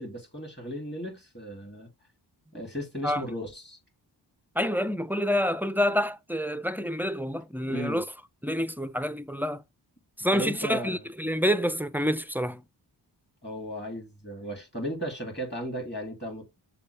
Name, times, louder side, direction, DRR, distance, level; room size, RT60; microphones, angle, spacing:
voice 1, 0.0-1.9 2.5-3.8 7.7-8.0 10.3-11.0 13.4-16.5, equal, 25° left, 2.4 m, -36 dB
voice 2, 4.6-8.0 8.4-9.6 10.2-12.6, equal, 5° right, 0.3 m, -27 dB
6.6 x 2.3 x 3.2 m
cardioid pair, 45°, 44 cm